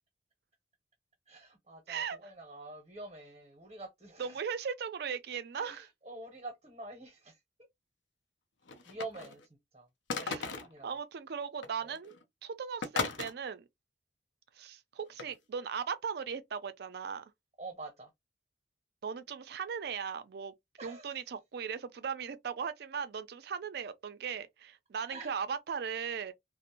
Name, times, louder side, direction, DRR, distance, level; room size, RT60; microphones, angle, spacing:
voice 1, 1.3-4.4 5.5-7.4 8.8-9.4 9.7-9.9 10.6-10.9 11.8-12.0 17.6-18.1 20.8-21.2 25.1-25.3, right 2 dB, 35° right, 0.7 m, -46 dB
voice 2, 1.9-2.2 4.2-5.9 10.2-10.6 10.8-12.1 12.4-13.6 14.6-17.2 19.0-20.5 20.8-26.3, right 6 dB, 60° right, 0.4 m, -38 dB
sound 1, 8.7-9.4 10.1-10.8 11.6-11.7 11.9-12.2 12.8-13.3 15.2-15.3, left 4 dB, 85° left, 0.5 m, -36 dB
2.5 x 2.0 x 2.8 m
head